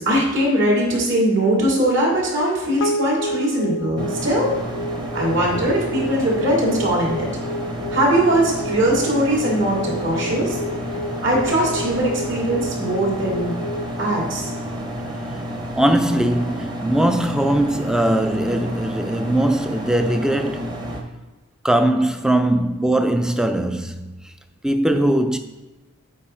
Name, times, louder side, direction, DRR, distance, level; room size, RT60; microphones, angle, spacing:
voice 1, 0.0-4.5 5.1-7.3 7.9-10.6 11.2-13.5 14.0-14.5, right 1 dB, 55° right, 2.7 m, -20 dB
sound 1, 2.8-15.3, left 1 dB, 75° left, 0.4 m, -31 dB
sound 2, 3.9-21.0, equal, 20° right, 1.0 m, -30 dB
voice 2, 15.8-20.7 21.6-24.1 24.6-25.4, right 1 dB, 5° right, 0.4 m, -20 dB
8.6 x 4.9 x 4.4 m
head